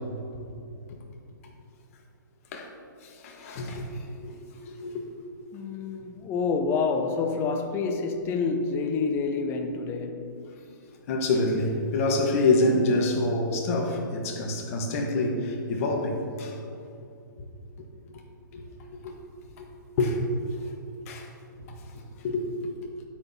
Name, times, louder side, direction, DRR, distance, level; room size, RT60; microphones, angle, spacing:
voice 1, 3.0-5.1 11.1-16.6 18.5-18.6 19.0-19.1 19.6-19.7 20.0-20.2 21.1-21.3 21.6-22.9, left 2 dB, 45° left, 1.4 m, -27 dB
voice 2, 5.5-10.4, left 4 dB, 20° left, 0.6 m, -28 dB
12.5 x 9.0 x 2.8 m
hypercardioid pair, 145°, 11 cm